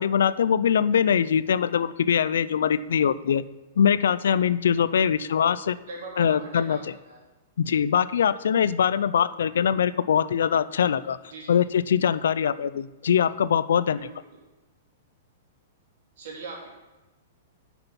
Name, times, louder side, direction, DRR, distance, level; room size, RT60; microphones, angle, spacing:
voice 1, 0.0-3.4 3.8-5.8 6.2-6.8 7.6-11.2 11.5-14.0, left 8 dB, 85° left, 16 dB, 0.4 m, -22 dB
voice 2, 5.2-5.5 5.9-7.3 11.3-11.6 13.9-14.3 16.2-16.7, right 3 dB, 65° right, -2 dB, 3.2 m, -41 dB
8.8 x 6.0 x 5.9 m, 1.1 s
hypercardioid pair, 165°, 0 cm